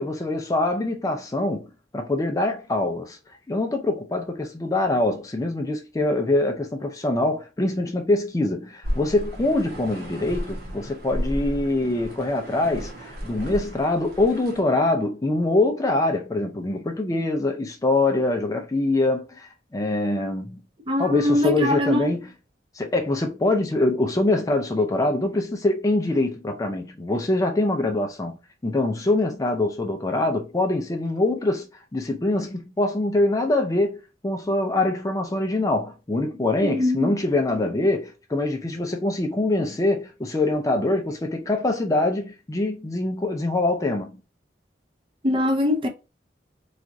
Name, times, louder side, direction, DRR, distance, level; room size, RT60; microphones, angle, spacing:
voice 1, 0.0-3.2 3.5-20.6 21.0-22.3 22.7-28.4 28.6-31.7 31.9-34.0 34.2-44.2, left 2 dB, 20° left, 0.4 m, -24 dB
sound 1, 8.8-14.6, equal, 55° right, 0.8 m, -33 dB
voice 2, 20.9-22.1 36.6-37.1 45.2-45.9, left 1 dB, 30° right, 0.6 m, -22 dB
4.1 x 2.3 x 2.5 m
head